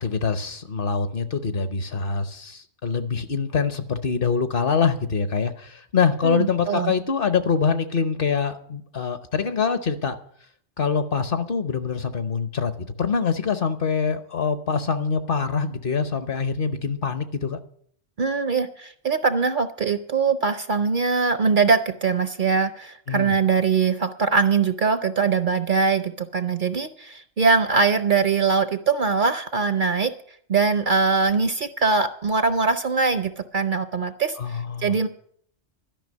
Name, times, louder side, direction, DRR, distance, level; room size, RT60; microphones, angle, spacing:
voice 1, 0.0-10.2 10.8-17.6 23.1-23.3 34.4-35.0, left 5 dB, 50° left, 10 dB, 1.0 m, -24 dB
voice 2, 6.2-6.9 18.2-30.1 30.5-35.1, right 5 dB, 50° right, 10 dB, 0.7 m, -22 dB
12.5 x 5.8 x 9.3 m, 0.62 s
omnidirectional pair, 1.2 m